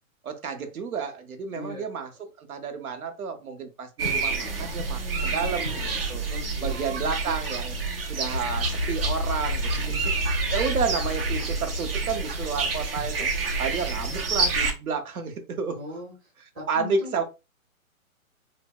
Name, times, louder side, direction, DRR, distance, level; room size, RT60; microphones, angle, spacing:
voice 1, 0.2-2.1 2.4-6.2 6.6-9.9 10.5-13.3 13.6-15.8 16.7-17.2, right 5 dB, 80° right, 0.8 m, -31 dB
voice 2, 1.5-1.8 5.4-6.0 6.3-6.8 9.7-10.1 15.7-16.1 16.5-17.2, left 2 dB, 10° right, 0.8 m, -40 dB
sound 1, 4.0-14.7, right 4 dB, 45° right, 0.6 m, -29 dB
sound 2, 8.3-13.4, left 2 dB, 35° left, 0.4 m, -31 dB
3.3 x 2.0 x 2.2 m
hypercardioid pair, 165°, 42 cm